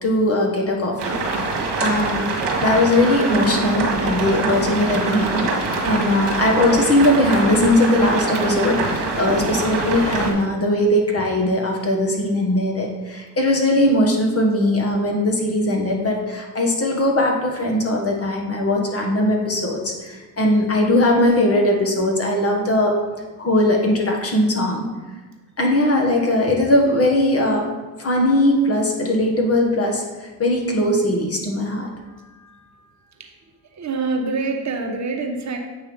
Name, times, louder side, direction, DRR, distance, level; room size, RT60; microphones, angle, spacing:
voice 1, 0.0-2.3 2.6-22.9 23.4-24.9 25.6-27.7 28.0-31.9, left 1 dB, 30° left, 1 dB, 1.6 m, -20 dB
sound 1, 1.0-10.3, right 3 dB, 60° right, 1.6 m, -24 dB
voice 2, 33.6-35.6, right 3 dB, 35° right, 3 dB, 1.2 m, -26 dB
8.0 x 3.1 x 5.5 m, 1.2 s
supercardioid pair, 75°, 47 cm